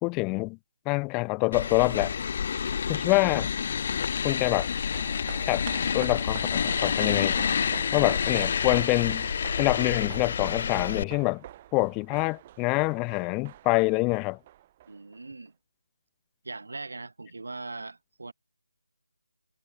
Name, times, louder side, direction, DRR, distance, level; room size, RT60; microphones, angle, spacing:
voice 1, 0.0-0.6 0.9-2.2 2.9-3.5 4.2-4.7 5.5-5.7 5.9-7.4 7.9-9.3 9.6-11.4 11.7-14.4, left 27 dB, 15° left, 0.5 m, -26 dB
sound 1, 1.5-11.0, left 7 dB, 35° left, 1.1 m, -28 dB
sound 2, 4.6-15.2 15.5-15.6, right 13 dB, 20° right, 1.0 m, -46 dB
voice 2, 14.9-15.5 16.4-18.3, right 3 dB, 65° right, 2.1 m, -40 dB
figure-of-eight pair, 160°, 0 cm